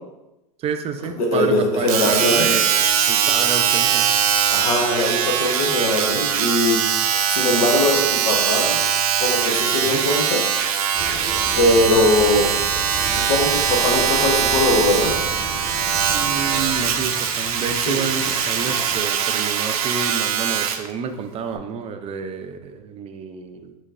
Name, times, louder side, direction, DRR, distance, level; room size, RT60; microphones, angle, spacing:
voice 1, 0.6-2.6 3.1-4.1 9.8-10.0 16.1-23.7, right 6 dB, 35° right, 7 dB, 0.5 m, -29 dB
voice 2, 1.2-2.6 4.5-6.8 7.3-8.8 9.2-10.4 11.5-12.5 13.1-15.2 17.9-18.0, left 1 dB, 75° left, 1 dB, 1.2 m, -20 dB
Domestic sounds home sounds, 1.9-20.9 21.6-21.7, right 8 dB, 75° right, 0.5 m, -21 dB
sound 1, 10.9-16.9, right 1 dB, ahead, 1.0 m, -34 dB
sound 2, 13.8-19.0, left 2 dB, 30° left, 1.0 m, -35 dB
5.2 x 3.9 x 2.5 m, 0.93 s
hypercardioid pair, 105°, 19 cm